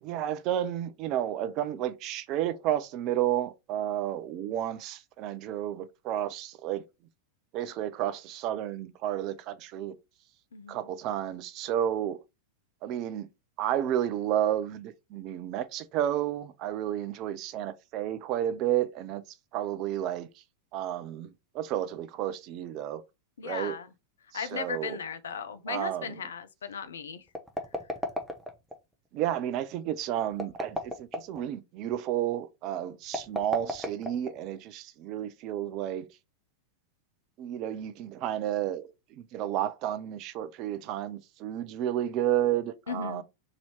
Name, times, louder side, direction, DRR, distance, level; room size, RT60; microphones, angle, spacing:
voice 1, 0.0-6.8 7.5-10.0 10.7-12.2 12.8-13.3 13.6-19.2 19.5-20.3 20.7-23.0 23.4-23.8 24.3-25.0 25.7-26.1 29.1-36.1 37.4-43.2, right 11 dB, 40° right, 0.4 m, -31 dB
voice 2, 23.4-23.9 24.3-27.2 42.9-43.2, left 6 dB, 65° left, 0.5 m, -36 dB
sound 1, 27.3-28.8 30.3-31.4 33.1-34.6, left 1 dB, ahead, 0.7 m, -34 dB
3.0 x 2.7 x 4.2 m
figure-of-eight pair, 90°, 0 cm